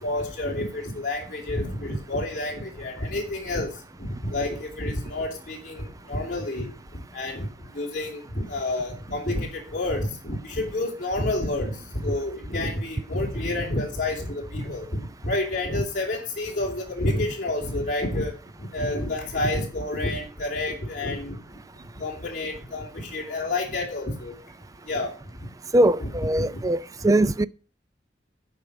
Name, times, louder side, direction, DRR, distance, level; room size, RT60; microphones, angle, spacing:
voice 1, 0.0-3.7 4.0-6.7 7.1-7.5 7.7-14.9 15.2-18.3 18.7-21.3 22.0-24.3 24.9-25.1 26.0-26.1 26.4-26.5, left 2 dB, 45° left, 2.9 m, -29 dB
voice 2, 25.7-27.5, right 1 dB, 20° right, 0.4 m, -21 dB
12.0 x 4.9 x 6.5 m
head